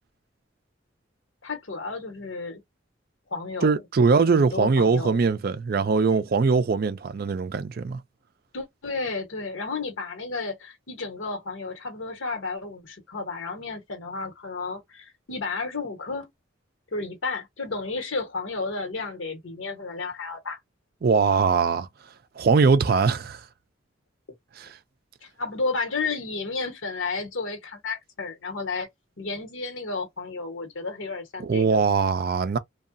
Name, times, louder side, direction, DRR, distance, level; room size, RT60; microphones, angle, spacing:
voice 1, 1.4-2.6 3.3-3.8 4.3-5.2 8.5-16.3 16.9-20.6 25.4-28.9 29.2-31.8, left 3 dB, 90° left, 1.1 m, -32 dB
voice 2, 3.6-8.0 21.0-21.9 22.4-23.4 24.6-24.7 31.4-32.6, right 4 dB, 50° right, 0.4 m, -21 dB
2.7 x 2.3 x 2.5 m
head